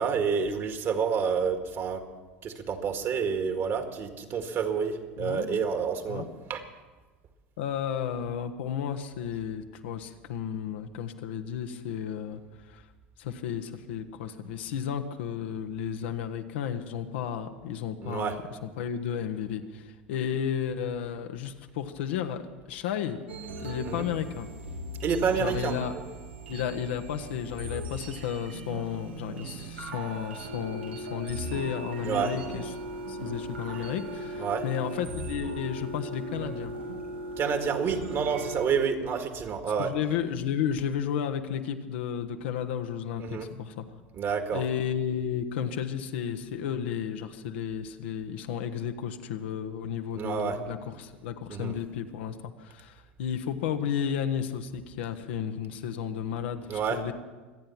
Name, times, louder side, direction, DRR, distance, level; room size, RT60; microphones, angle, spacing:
voice 1, 0.0-2.0 2.4-6.6 18.0-18.4 23.8-24.0 25.0-25.8 32.1-32.3 34.4-34.6 37.4-39.9 43.2-43.5 44.1-44.6 50.1-50.6 51.5-51.8 56.7-57.0, right 6 dB, 40° right, 6 dB, 2.0 m, -29 dB
voice 2, 5.2-5.6 6.1-6.3 7.6-12.9 13.2-23.2 23.6-24.5 25.3-26.0 26.5-32.7 33.1-36.7 39.8-44.0 44.5-57.1, left 8 dB, 70° left, 7 dB, 1.2 m, -33 dB
sound 1, 23.3-38.8, right 2 dB, 85° right, 1.5 m, -38 dB
25.5 x 9.1 x 5.9 m, 1.3 s
hypercardioid pair, 80°, 6 cm